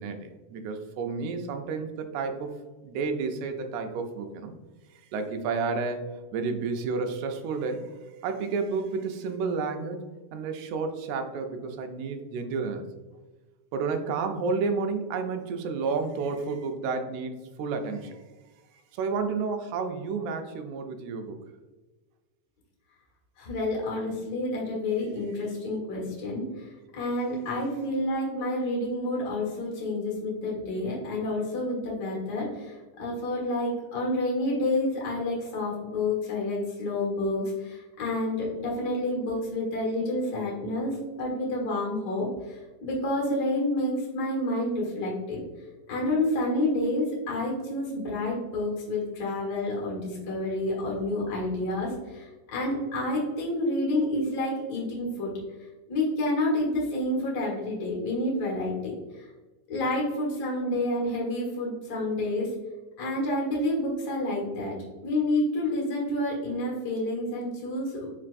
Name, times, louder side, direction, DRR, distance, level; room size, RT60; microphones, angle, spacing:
voice 1, 0.0-2.5 2.8-4.5 5.1-6.0 6.3-7.9 8.2-10.0 10.3-12.9 13.7-17.3 17.6-18.2 19.0-21.4, right 4 dB, 80° right, 6 dB, 1.9 m, -31 dB
voice 2, 23.4-45.4 45.9-55.3 55.9-59.3 59.7-62.5 63.0-64.8 65.0-68.1, left 1 dB, 45° left, -4 dB, 1.5 m, -29 dB
4.5 x 4.4 x 2.5 m, 1.2 s
omnidirectional pair, 3.5 m